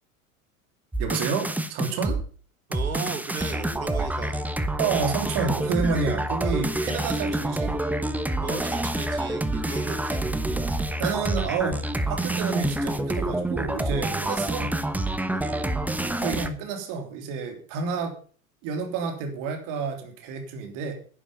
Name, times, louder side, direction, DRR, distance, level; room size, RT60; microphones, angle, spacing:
sound 1, 0.9-2.2 2.7-16.5, right 1 dB, 5° right, 1.1 m, -27 dB
voice 1, 1.0-2.2 4.8-7.8 10.7-14.7 16.1-18.1 18.6-20.9, right 5 dB, 50° right, 5 dB, 3.3 m, -29 dB
voice 2, 2.7-4.5 8.4-10.2 14.1-14.5 15.3-15.8, right 6 dB, 85° right, 9 dB, 1.9 m, -36 dB
11.0 x 11.0 x 5.4 m, 0.40 s
figure-of-eight pair, 85°, 41 cm